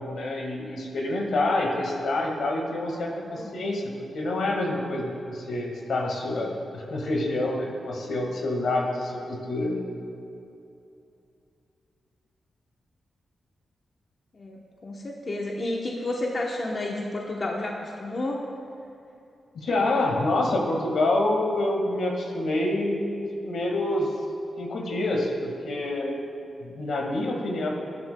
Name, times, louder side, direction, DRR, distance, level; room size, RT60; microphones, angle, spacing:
voice 1, 0.0-9.8 19.5-24.1 24.6-26.2 26.6-27.7, left 2 dB, 80° left, 0 dB, 1.7 m, -27 dB
voice 2, 3.1-3.5 14.3-18.5, left 2 dB, 40° left, -1 dB, 1.0 m, -31 dB
16.0 x 11.0 x 2.3 m, 2.6 s
wide cardioid pair, 105°, 0 cm